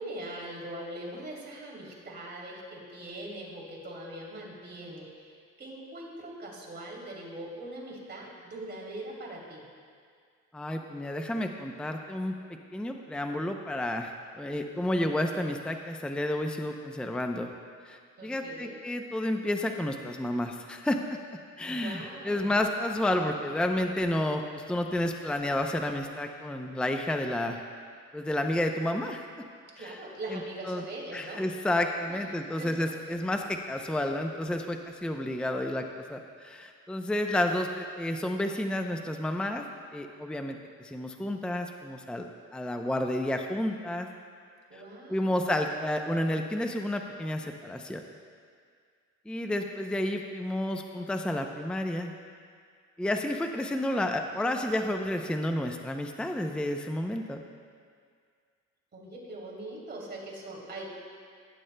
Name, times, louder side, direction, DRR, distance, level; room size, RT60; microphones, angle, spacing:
voice 1, 0.0-9.6 18.2-18.8 21.7-22.5 29.7-31.4 32.1-32.2 32.6-33.1 44.7-45.5 58.9-60.9, right 1 dB, 35° right, -4 dB, 3.0 m, -41 dB
voice 2, 10.5-12.4 12.7-17.5 17.9-21.2 21.6-27.6 28.1-29.3 29.8-30.0 30.3-30.4 30.6-30.8 31.1-39.7 39.9-42.3 42.5-44.1 44.7-44.8 45.1-48.0 49.3-52.1 53.0-57.4, left 1 dB, 5° left, 4 dB, 0.6 m, -31 dB
18.5 x 10.0 x 2.2 m, 2.1 s
cardioid pair, 90°, 30 cm